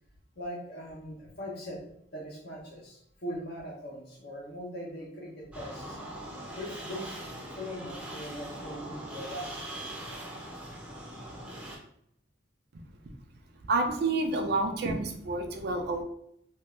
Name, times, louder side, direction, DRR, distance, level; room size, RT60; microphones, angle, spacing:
voice 1, 0.4-1.8 2.1-6.0 6.6-7.2 7.6-9.5, equal, 65° left, -3 dB, 1.0 m, -40 dB
sound 1, 5.5-11.8, right 1 dB, 5° right, 0.6 m, -41 dB
voice 2, 13.7-16.0, right 2 dB, 60° right, 4 dB, 0.5 m, -29 dB
2.7 x 2.4 x 3.2 m, 0.72 s
head